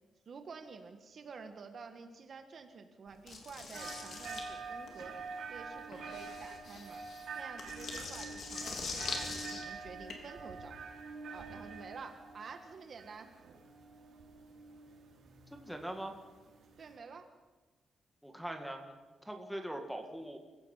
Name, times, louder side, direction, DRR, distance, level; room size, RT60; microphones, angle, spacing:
voice 1, 0.2-5.2 5.5-7.0 7.3-10.8 11.3-13.3 16.8-17.3, right 5 dB, 45° right, 7 dB, 1.5 m, -50 dB
sound 1, 3.3-10.1, left 4 dB, 55° left, 3.4 m, -43 dB
sound 2, 3.7-17.0, right 4 dB, 75° right, 4.5 m, -47 dB
voice 2, 15.5-16.2 18.2-18.9 19.2-20.4, right 1 dB, ahead, 3 dB, 2.0 m, -41 dB
28.5 x 16.5 x 5.7 m, 1.2 s
wide cardioid pair, 150°, 0 cm